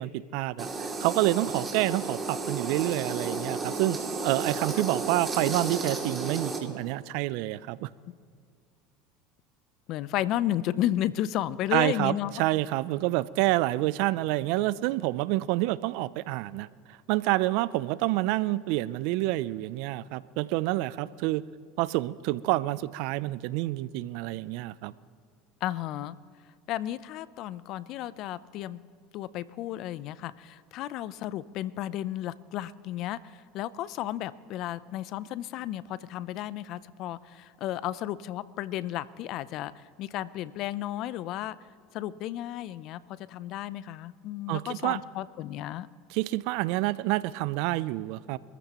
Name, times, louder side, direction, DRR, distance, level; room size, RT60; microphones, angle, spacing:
voice 1, 0.0-4.0 4.2-7.9 11.7-16.7 17.1-21.4 21.8-24.9 44.5-45.0 46.1-48.4, right 17 dB, 70° right, 19 dB, 0.4 m, -28 dB
sound 1, 0.6-6.6, right 3 dB, 20° right, 2.6 m, -33 dB
voice 2, 9.9-12.3 25.6-26.2 26.7-28.8 29.1-41.6 41.9-45.9, left 13 dB, 55° left, 18 dB, 0.5 m, -33 dB
25.5 x 14.5 x 3.0 m, 2.1 s
hypercardioid pair, 90°, 0 cm